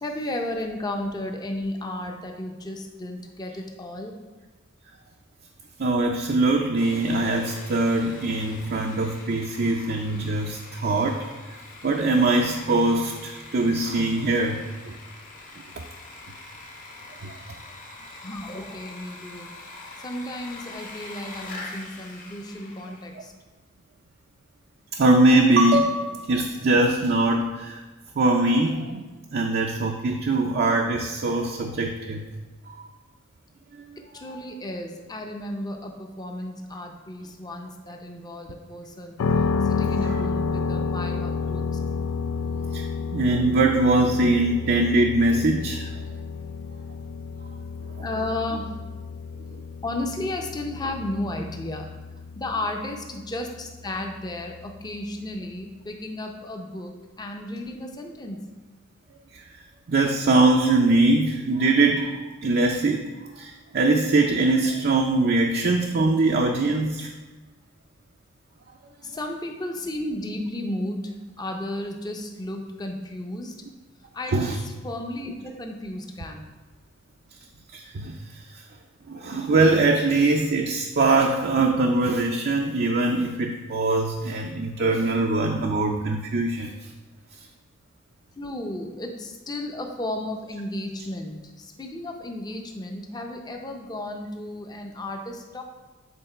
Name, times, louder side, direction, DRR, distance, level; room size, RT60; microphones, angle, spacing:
voice 1, 0.0-4.1 18.2-19.5 20.0-23.3 34.1-39.2 39.7-41.6 48.0-48.7 49.8-51.9 52.4-58.4 69.0-73.6 74.1-74.5 74.8-76.4 88.4-91.4 91.8-95.6, left 1 dB, 20° left, 3 dB, 0.6 m, -33 dB
voice 2, 5.8-11.3 11.8-14.9 17.2-17.3 24.9-27.8 28.2-29.0 29.3-32.3 32.7-32.9 33.7-34.4 40.0-40.3 42.7-42.9 43.1-45.9 48.0-48.1 59.3-59.4 59.9-67.1 74.3-74.6 77.7-78.6 79.1-86.9 87.4-87.5, right 2 dB, 50° right, 1 dB, 0.5 m, -22 dB
Sawing, 6.8-23.2, left 2 dB, 40° left, 0.9 m, -44 dB
sound 1, 39.2-55.0, left 5 dB, 90° left, 0.4 m, -30 dB
7.9 x 3.8 x 4.4 m, 1.2 s
head